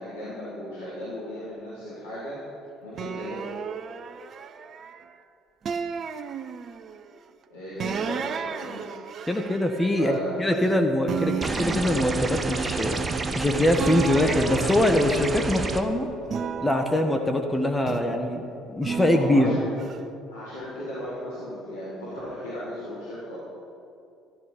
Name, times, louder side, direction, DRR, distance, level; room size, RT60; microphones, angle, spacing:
voice 1, 0.0-2.4 2.8-3.4 7.5-8.9 9.9-10.3 19.0-19.6 20.3-23.4, equal, 85° left, -12 dB, 4.1 m, -36 dB
sound 1, 3.0-5.1 5.7-7.0 7.8-10.7 11.1-13.4 13.8-15.8 16.3-18.2 18.8-20.0, right 7 dB, 45° right, 0.7 m, -34 dB
voice 2, 9.3-13.0 13.3-16.1 16.6-19.6, left 1 dB, 15° left, 4 dB, 1.6 m, -23 dB
sound 2, 11.4-15.8, right 3 dB, 25° right, 1.1 m, -29 dB
15.5 x 12.0 x 5.3 m, 2.6 s
hypercardioid pair, 55°, 0 cm